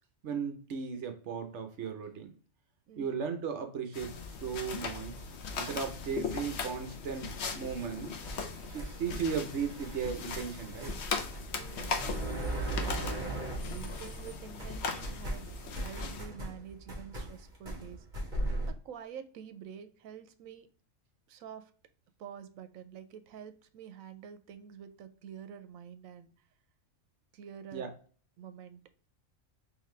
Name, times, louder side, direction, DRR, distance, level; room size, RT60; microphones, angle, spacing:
voice 1, 0.2-2.3 3.0-5.2 5.6-8.1 8.7-10.9 27.7-27.9, right 6 dB, 65° right, 7 dB, 0.9 m, -36 dB
voice 2, 2.9-3.3 11.6-12.0 12.7-18.1 18.7-20.7 21.3-21.7 22.2-26.3 27.3-27.9 28.4-28.8, right 8 dB, 90° right, 10 dB, 1.0 m, -48 dB
sound 1, 3.9-16.2, left 4 dB, 60° left, 0.9 m, -39 dB
sound 2, 7.9-14.3 14.6-18.7, right 1 dB, 40° right, 1.4 m, -38 dB
3.8 x 3.2 x 3.1 m, 0.42 s
omnidirectional pair, 1.4 m